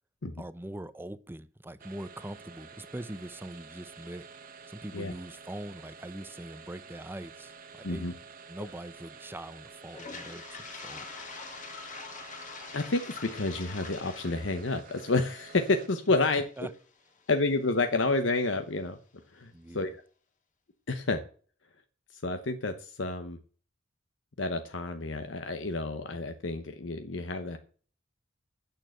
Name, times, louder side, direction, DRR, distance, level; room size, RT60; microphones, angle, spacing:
voice 1, 0.4-4.3 4.7-8.1 8.5-11.1 16.6-16.7 19.5-19.9, right 1 dB, 10° right, 0.6 m, -42 dB
sound 1, 1.8-16.1, right 5 dB, 50° right, 1.4 m, -50 dB
Toilet flush, 9.8-17.8, left 5 dB, 40° left, 2.3 m, -45 dB
voice 2, 12.7-16.4 17.3-19.0 19.3-19.9 20.9-21.2 22.1-23.4 24.4-27.6, left 3 dB, 70° left, 0.9 m, -29 dB
9.0 x 6.7 x 7.8 m
head